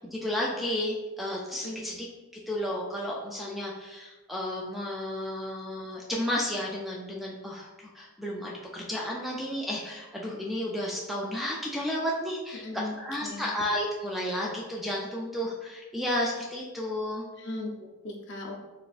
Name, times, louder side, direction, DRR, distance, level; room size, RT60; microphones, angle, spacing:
voice 1, 0.0-2.1 2.3-17.2, left 1 dB, ahead, -3 dB, 0.3 m, -32 dB
voice 2, 12.5-12.9 13.2-13.5 17.4-18.5, left 2 dB, 55° left, 0 dB, 0.6 m, -37 dB
4.1 x 3.3 x 2.4 m, 1.2 s
head